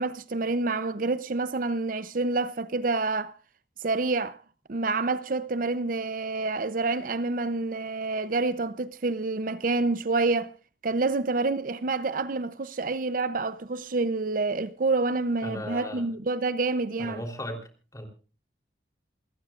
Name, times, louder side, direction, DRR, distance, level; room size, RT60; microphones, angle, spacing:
voice 1, 0.0-3.3 3.8-4.4 4.7-10.5 10.8-17.2, right 3 dB, 50° right, 0.7 m, -28 dB
voice 2, 15.4-16.1 17.0-17.6 17.9-18.0, left 1 dB, 20° left, 3.5 m, -36 dB
28.5 x 15.0 x 2.5 m
head